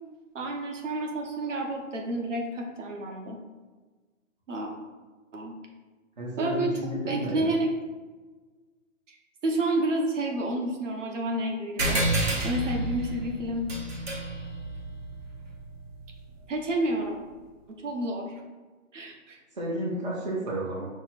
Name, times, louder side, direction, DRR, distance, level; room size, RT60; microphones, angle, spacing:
voice 1, 0.3-3.4 4.5-4.7 5.3-5.6 6.4-6.7 7.1-7.7 9.1-9.2 9.4-13.7 16.5-17.2 17.8-18.4 18.9-19.4, right 1 dB, 65° right, 1 dB, 1.0 m, -30 dB
voice 2, 6.2-7.5 19.5-20.8, right 1 dB, 35° right, -4 dB, 0.7 m, -31 dB
sound 1, 11.8-16.7, right 2 dB, 50° right, 1.2 m, -31 dB
5.9 x 2.0 x 4.2 m, 1.3 s
hypercardioid pair, 175°, 40 cm